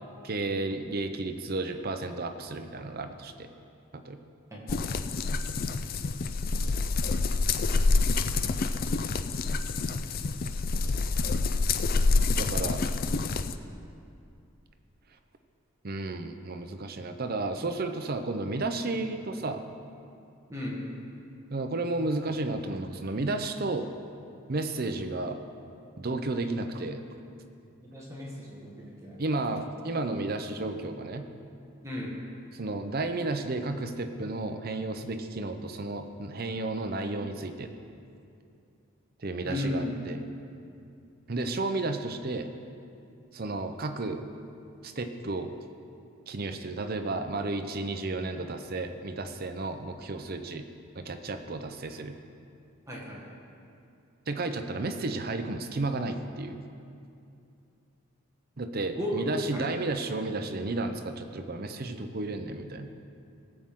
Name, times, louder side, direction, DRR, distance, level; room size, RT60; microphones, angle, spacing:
voice 1, 0.2-3.5 3.9-4.2 12.3-12.8 15.8-19.6 21.5-23.9 24.5-25.4 26.0-27.0 29.2-31.2 32.5-37.7 39.2-40.2 41.3-42.5 43.3-44.2 44.8-45.6 46.3-50.7 51.0-52.1 54.3-56.6 58.6-62.9, right 2 dB, 45° right, 7 dB, 0.7 m, -32 dB
voice 2, 4.5-5.0 20.5-20.8 27.9-29.2 31.8-32.1 39.4-39.9 52.9-53.2 58.9-59.2 59.5-59.7, left 1 dB, 15° right, -4 dB, 1.6 m, -35 dB
sound 1, 4.7-13.6, left 3 dB, 45° left, 0.4 m, -27 dB
18.5 x 7.5 x 3.7 m, 2.5 s
head